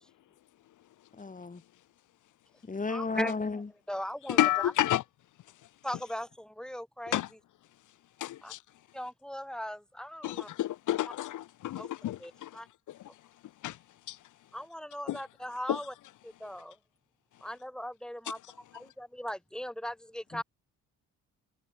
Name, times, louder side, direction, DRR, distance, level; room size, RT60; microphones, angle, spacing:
voice 1, 1.2-1.6 2.7-3.7, left 4 dB, 25° left, 5.8 m, -33 dB
voice 2, 2.9-3.6 3.9-4.4 5.8-7.2 8.4-8.5 8.9-10.5 11.8-11.9 12.2-12.7 14.5-15.9 16.2-16.8 17.4-18.4 18.7-20.4, equal, ahead, 5.3 m, -38 dB
voice 3, 4.3-5.0 7.1-7.3 8.2-8.6 10.2-12.6 12.9-13.1 13.6-13.8 14.1-14.2 15.1-15.2 15.7-15.8, left 14 dB, 80° left, 2.4 m, -30 dB
cardioid pair, 90°, 30 cm